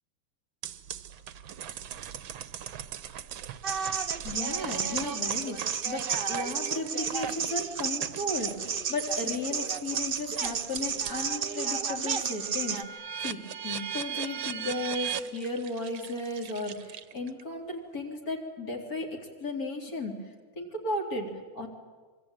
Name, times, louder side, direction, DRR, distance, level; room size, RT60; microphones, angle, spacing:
sound 1, 0.6-11.3 11.8-17.4, right 9 dB, 65° right, 1.7 m, -40 dB
sound 2, 3.6-12.8, right 6 dB, 85° right, 0.4 m, -32 dB
voice 1, 4.2-20.2 20.6-21.7, left 2 dB, 40° left, 1 dB, 4.1 m, -35 dB
25.5 x 24.0 x 9.2 m, 1.5 s
omnidirectional pair, 2.4 m